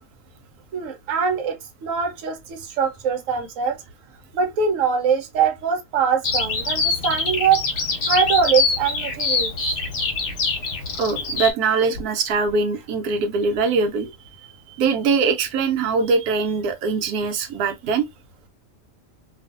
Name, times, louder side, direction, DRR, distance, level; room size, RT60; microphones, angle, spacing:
voice 1, 0.7-3.8 4.3-9.5, right 6 dB, 65° right, 1.1 m, -23 dB
Bird vocalization bird call bird song, 6.2-11.5, left 4 dB, 55° left, 1.0 m, -24 dB
voice 2, 11.0-14.1 14.7-18.1, right 4 dB, 85° right, 1.1 m, -22 dB
2.7 x 2.4 x 2.4 m
omnidirectional pair, 1.6 m